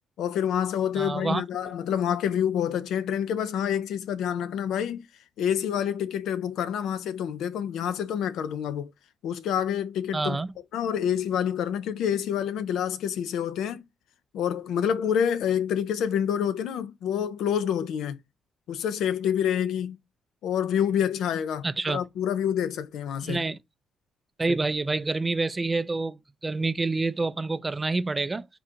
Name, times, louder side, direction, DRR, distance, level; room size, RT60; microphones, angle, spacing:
voice 1, 0.2-5.1 5.4-8.9 9.2-10.4 10.7-13.8 14.3-18.2 18.7-20.0 20.4-23.4, left 9 dB, 80° left, 0.4 m, -27 dB
voice 2, 1.0-1.4 10.1-10.5 21.6-22.0 23.2-23.6 24.4-26.2 26.4-28.5, right 3 dB, 25° right, 0.3 m, -27 dB
3.7 x 2.5 x 4.2 m
cardioid pair, 90°, 0 cm